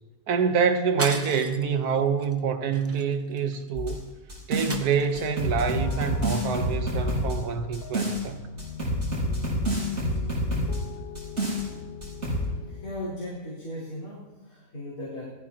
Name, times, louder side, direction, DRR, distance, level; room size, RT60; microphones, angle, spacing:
voice 1, 0.3-4.0 4.5-8.4, right 6 dB, 85° right, 1.5 m, -26 dB
sound 1, 1.0-1.7 2.2-2.4 2.7-3.7 4.7-5.5, right 2 dB, 25° right, 0.3 m, -35 dB
sound 2, 3.7-4.8 5.1-8.2 8.6-10.8 11.1-11.6 12.0-12.4, equal, 50° right, 5.9 m, -28 dB
sound 3, 5.8-13.0, left 6 dB, 50° left, 0.8 m, -41 dB
voice 2, 12.2-15.2, left 1 dB, 75° left, 4.2 m, -38 dB
19.5 x 14.0 x 2.8 m
omnidirectional pair, 1.6 m